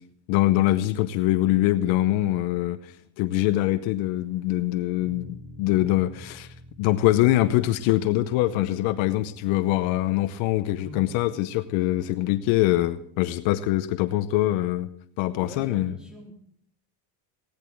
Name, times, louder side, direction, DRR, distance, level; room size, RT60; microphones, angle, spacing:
voice 1, 0.3-14.9 15.2-15.9, left 15 dB, 75° left, 12 dB, 0.9 m, -24 dB
Bass guitar, 5.0-11.2, equal, 25° right, 7.2 m, -48 dB
voice 2, 10.8-11.1 15.4-16.3, left 2 dB, ahead, 0 dB, 4.1 m, -42 dB
16.5 x 10.5 x 4.5 m, 0.64 s
supercardioid pair, 110°, 46 cm